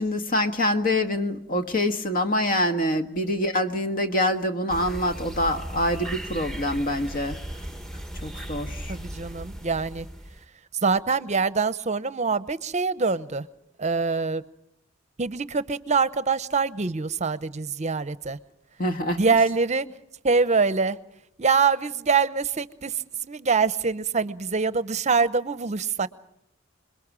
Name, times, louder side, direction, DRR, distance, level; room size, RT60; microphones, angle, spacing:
voice 1, 0.0-7.4 8.2-9.0 18.8-19.2, left 1 dB, 45° left, 8 dB, 1.5 m, -25 dB
sound 1, 4.7-10.5, right 1 dB, ahead, 1.1 m, -37 dB
voice 2, 8.9-10.1 10.8-13.5 13.8-14.4 15.2-18.4 19.1-19.9 20.2-21.0 21.4-26.1, right 5 dB, 35° right, 15 dB, 0.8 m, -24 dB
27.0 x 22.0 x 6.1 m, 0.77 s
head